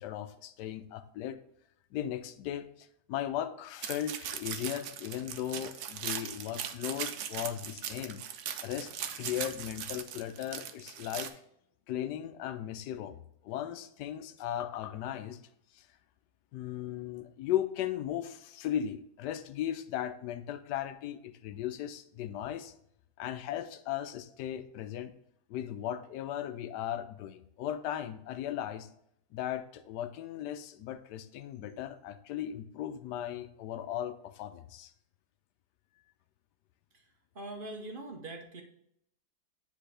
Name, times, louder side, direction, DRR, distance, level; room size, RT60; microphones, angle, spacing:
voice 1, 0.0-1.4 1.9-8.2 8.6-11.3 11.9-15.4 15.7-15.9 16.5-22.7 23.2-25.1 25.5-28.9 29.3-34.9, left 11 dB, 85° left, 10 dB, 1.2 m, -37 dB
sound 1, 3.8-11.3, right 9 dB, 75° right, 1.2 m, -39 dB
voice 2, 36.9-38.6, right 2 dB, 45° right, 3 dB, 0.7 m, -43 dB
9.8 x 3.5 x 3.3 m, 0.74 s
omnidirectional pair, 1.7 m